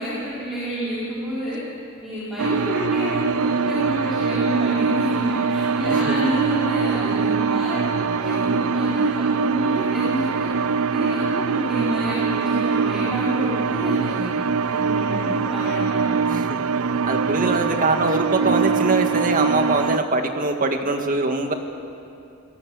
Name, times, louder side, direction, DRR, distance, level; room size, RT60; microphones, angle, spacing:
voice 1, 0.0-1.6 2.0-10.5 10.9-14.3 14.6-16.3, equal, ahead, -10 dB, 4.7 m, -29 dB
sound 1, 2.4-20.0, right 5 dB, 80° right, 0.5 m, -23 dB
voice 2, 16.3-16.6 17.0-21.5, right 2 dB, 40° right, 5 dB, 1.9 m, -23 dB
26.5 x 18.0 x 7.7 m, 2.6 s
head